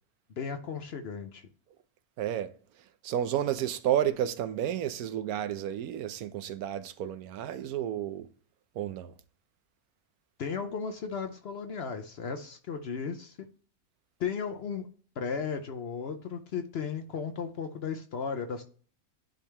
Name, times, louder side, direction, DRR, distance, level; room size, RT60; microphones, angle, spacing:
voice 1, 0.4-1.4 10.4-13.5 14.2-14.9 15.2-18.6, left 6 dB, 60° left, 0.7 m, -35 dB
voice 2, 2.2-2.5 3.0-8.3 8.7-9.1, right 11 dB, 85° right, 1.1 m, -31 dB
10.0 x 3.4 x 3.3 m
omnidirectional pair, 1.5 m